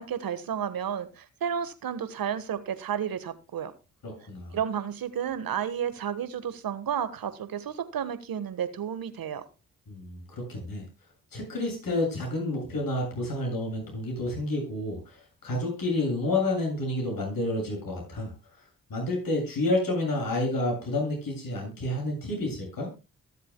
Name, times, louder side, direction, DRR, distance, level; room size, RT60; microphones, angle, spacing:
voice 1, 0.0-3.7 4.5-9.4, right 8 dB, 55° right, 1.5 m, -32 dB
voice 2, 4.0-4.6 9.9-10.8 11.3-15.2 15.4-18.3 18.9-22.9, left 2 dB, 55° left, 7.6 m, -29 dB
22.5 x 7.5 x 2.3 m
hypercardioid pair, 45°, 41 cm